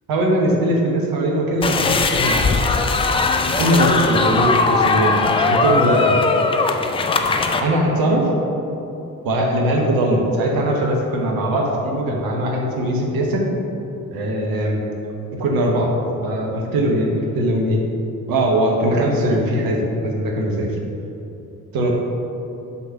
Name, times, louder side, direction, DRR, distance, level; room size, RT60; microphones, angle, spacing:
voice 1, 0.1-2.5 3.6-5.2 5.5-6.2 7.6-8.3 9.2-13.5 14.1-14.8 15.4-17.8 18.3-20.7 21.7-21.9, right 1 dB, 55° right, 0 dB, 1.2 m, -20 dB
sound 1, 1.6-7.6, left 4 dB, 15° left, 0.3 m, -19 dB
5.8 x 4.0 x 5.6 m, 2.9 s
figure-of-eight pair, 45°, 42 cm